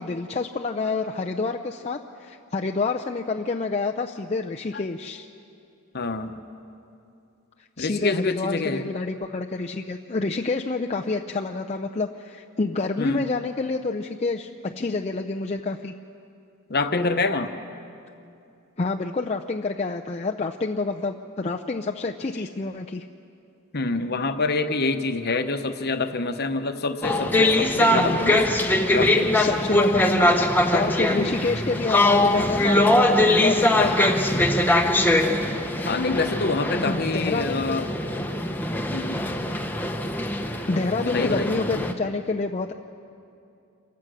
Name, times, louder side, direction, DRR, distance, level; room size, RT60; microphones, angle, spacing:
voice 1, 0.0-5.3 7.8-15.9 18.8-23.0 27.9-28.2 29.3-30.4 30.7-34.4 36.8-37.8 40.7-42.7, left 3 dB, 30° left, 2 dB, 0.5 m, -28 dB
voice 2, 5.9-6.3 7.8-8.9 13.0-13.2 16.7-17.5 23.7-28.4 28.9-29.3 31.1-31.3 35.8-37.8 38.9-39.3 41.0-41.5, left 3 dB, 45° left, 8 dB, 1.0 m, -26 dB
sound 1, 27.0-41.9, left 1 dB, 10° left, 0.9 m, -22 dB
27.5 x 15.5 x 6.3 m, 2.6 s
head